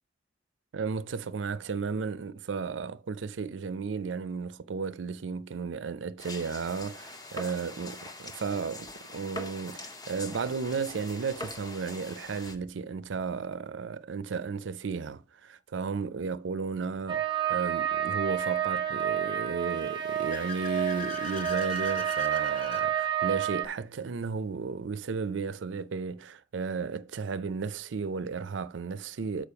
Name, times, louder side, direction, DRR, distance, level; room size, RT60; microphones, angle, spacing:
voice 1, 0.7-29.5, right 5 dB, 80° right, 0.5 m, -34 dB
sound 1, 6.2-12.6, left 2 dB, 20° left, 0.9 m, -43 dB
sound 2, 17.1-23.6, right 10 dB, 30° right, 0.6 m, -30 dB
Car / Accelerating revving vroom, 19.7-22.9, left 4 dB, 45° left, 1.4 m, -41 dB
6.9 x 4.9 x 5.7 m
head